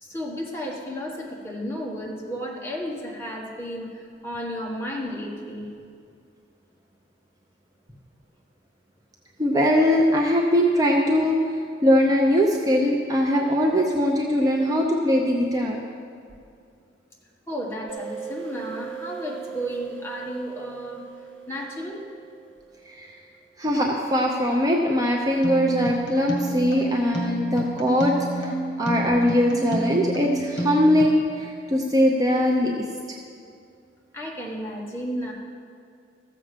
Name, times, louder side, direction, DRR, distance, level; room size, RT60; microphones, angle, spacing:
voice 1, 0.0-5.7 17.5-22.0 34.1-35.3, equal, 15° left, -3 dB, 1.5 m, -33 dB
voice 2, 9.4-15.8 22.9-23.1 23.6-32.7, equal, 20° right, 0 dB, 0.7 m, -21 dB
sound 1, 17.9-23.2, right 8 dB, 80° right, 1.2 m, -39 dB
sound 2, 25.4-31.2, right 1 dB, 65° left, 2.0 m, -29 dB
14.0 x 7.4 x 5.1 m, 2.3 s
head